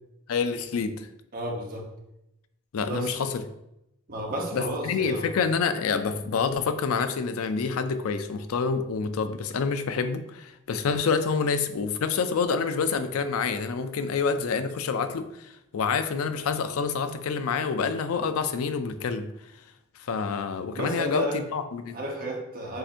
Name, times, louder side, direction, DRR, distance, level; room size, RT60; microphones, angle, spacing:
voice 1, 0.3-1.1 2.7-3.3 4.5-19.3 20.1-22.0, left 5 dB, 85° left, 9 dB, 0.4 m, -27 dB
voice 2, 1.3-1.9 2.8-3.2 4.1-5.3 20.7-21.4 21.9-22.8, equal, 40° right, -1 dB, 0.9 m, -32 dB
7.5 x 2.7 x 2.5 m, 0.84 s
head